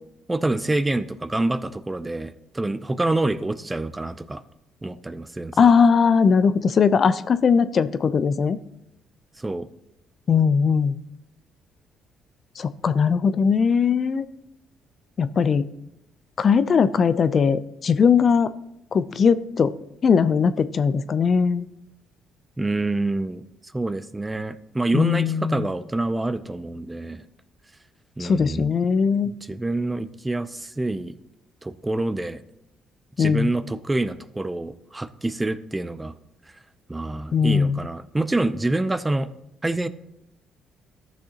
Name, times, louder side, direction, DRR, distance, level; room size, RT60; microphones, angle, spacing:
voice 1, 0.3-4.4 4.8-5.5 9.4-9.7 22.6-23.4 23.7-27.2 28.2-28.8 29.2-31.2 31.6-32.4 33.2-36.1 36.9-39.3 39.6-39.9, right 2 dB, 15° right, 13 dB, 0.5 m, -26 dB
voice 2, 5.6-8.6 10.3-11.0 12.6-14.2 15.2-15.6 16.4-18.5 18.9-19.7 20.0-21.7 24.9-25.7 28.2-29.3 33.2-33.5 37.3-37.8, left 6 dB, 50° left, 14 dB, 0.4 m, -19 dB
14.0 x 6.2 x 2.9 m, 0.83 s
hypercardioid pair, 55°, 0 cm